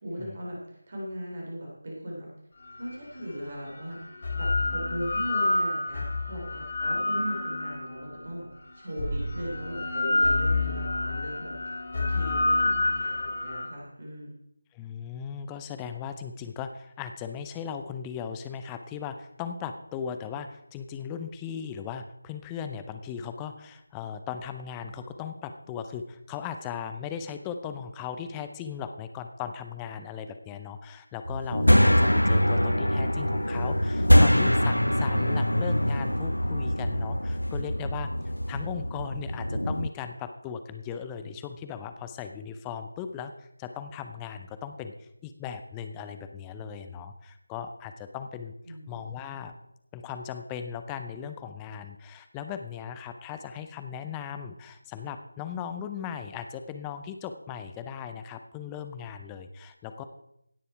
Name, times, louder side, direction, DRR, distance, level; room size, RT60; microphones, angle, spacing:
voice 1, 0.0-2.3 2.8-4.0 4.4-8.5 8.7-14.3 48.6-48.9, equal, 40° right, -3 dB, 3.7 m, -38 dB
sound 1, 2.9-3.0 4.0-8.2 9.0-13.7, left 2 dB, 40° left, 2.3 m, -28 dB
voice 2, 14.7-38.1 38.5-48.5 48.9-49.6 49.9-60.0, left 7 dB, 10° left, 8 dB, 0.6 m, -38 dB
sound 2, 31.3-39.9, equal, 80° left, 0.4 m, -23 dB
16.5 x 6.9 x 4.8 m, 0.81 s
figure-of-eight pair, 165°, 0 cm